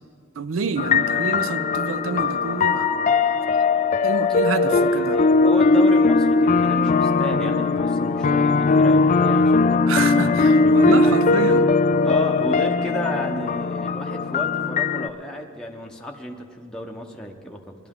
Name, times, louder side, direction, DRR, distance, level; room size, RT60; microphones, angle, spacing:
voice 1, 0.4-2.9 4.0-5.2 9.9-11.7, right 5 dB, 70° right, 0.5 m, -27 dB
sound 1, 0.8-15.1, left 3 dB, 40° left, 0.4 m, -19 dB
voice 2, 4.6-11.1 12.0-17.7, left 1 dB, 5° left, 0.7 m, -33 dB
20.0 x 11.5 x 3.6 m
head